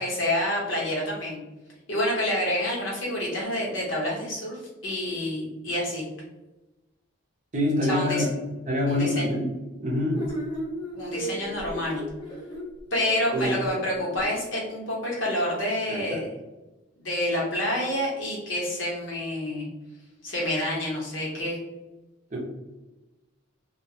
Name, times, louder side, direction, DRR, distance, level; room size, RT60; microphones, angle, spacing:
voice 1, 0.0-1.4 1.9-6.0 7.9-8.2 8.9-9.3 10.9-12.0 12.9-16.3 17.0-19.7 20.2-21.6, left 1 dB, 75° left, -4 dB, 1.0 m, -28 dB
voice 2, 7.5-8.3 8.7-9.5 9.8-10.2 13.3-13.6 15.9-16.2 22.3-22.4, left 1 dB, 35° right, -2 dB, 0.6 m, -26 dB
sound 1, 10.1-14.3, right 1 dB, 20° left, 0.5 m, -35 dB
2.3 x 2.1 x 2.7 m, 1.1 s
head